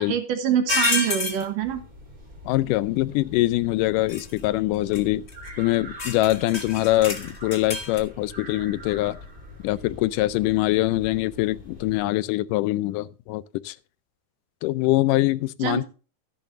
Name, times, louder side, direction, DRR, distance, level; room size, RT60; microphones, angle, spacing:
voice 1, 0.0-1.8 15.6-15.8, right 9 dB, 80° right, 3.1 m, -25 dB
sound 1, 0.7-1.4 4.1-4.4 4.9-5.0 5.3-5.5 6.0-8.0, left 3 dB, 45° left, 0.8 m, -28 dB
sound 2, 1.6-12.1, left 1 dB, 15° right, 3.3 m, -44 dB
voice 2, 2.5-5.3 5.6-9.2 9.6-13.8 14.6-15.8, left 17 dB, 85° left, 2.2 m, -23 dB
14.0 x 10.5 x 2.6 m
omnidirectional pair, 3.7 m